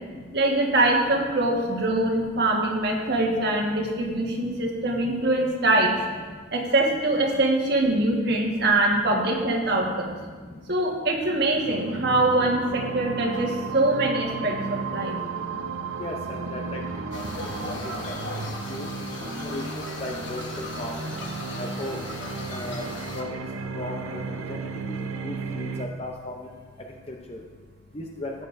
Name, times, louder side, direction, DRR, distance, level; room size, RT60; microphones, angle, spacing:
voice 1, 0.3-5.9 6.5-10.2 10.7-15.1, right 2 dB, 55° right, 0 dB, 1.5 m, -23 dB
sound 1, 11.6-25.9, right 4 dB, 85° right, 0.6 m, -34 dB
voice 2, 16.0-16.8 17.1-17.2 17.7-17.8 18.7-18.9 19.4-20.9 21.6-22.0 22.5-22.8 23.2-23.4 23.8-24.2 24.9-25.0 25.2-26.3 27.1-27.4 27.9-28.3, left 1 dB, 30° left, 1 dB, 0.6 m, -35 dB
sound 2, 17.1-23.2, left 2 dB, 60° left, 1.3 m, -38 dB
14.0 x 8.7 x 2.6 m, 1.5 s
head